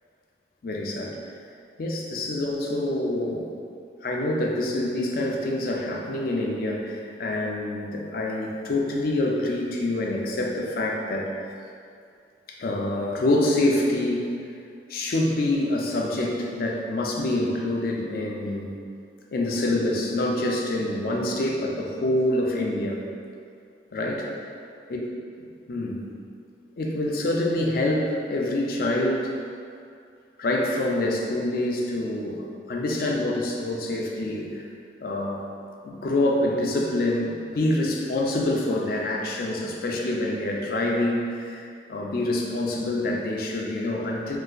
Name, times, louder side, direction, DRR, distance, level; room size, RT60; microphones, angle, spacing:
voice 1, 0.6-1.2 1.8-3.5 4.0-11.3 12.5-14.3 14.9-18.7 19.3-23.0 23.9-24.3 24.9-25.0 25.7-26.0 26.8-29.3 30.4-34.6 35.0-35.5 35.8-44.4, left 1 dB, 55° left, -1 dB, 0.4 m, -26 dB
3.9 x 2.5 x 2.3 m, 2.4 s
head